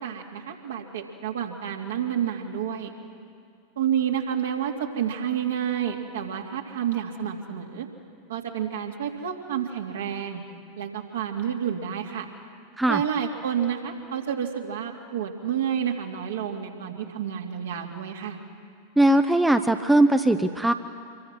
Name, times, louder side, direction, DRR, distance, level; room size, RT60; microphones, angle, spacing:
voice 1, 0.0-2.9 3.8-7.9 8.3-10.4 10.8-12.2 12.9-18.4, right 9 dB, 60° right, 2 dB, 2.5 m, -29 dB
voice 2, 19.0-20.7, right 1 dB, 5° right, 8 dB, 0.8 m, -20 dB
26.5 x 22.5 x 6.2 m, 2.3 s
figure-of-eight pair, 90°, 0 cm